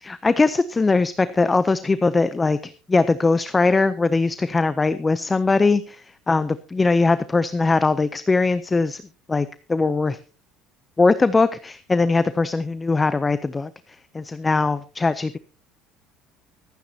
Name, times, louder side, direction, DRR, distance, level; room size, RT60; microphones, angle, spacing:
voice 1, 0.0-9.0 9.3-10.2 11.0-13.7 14.1-15.4, left 3 dB, 15° left, 14 dB, 0.5 m, -21 dB
24.5 x 9.3 x 2.8 m, 0.34 s
cardioid pair, 130°, 0 cm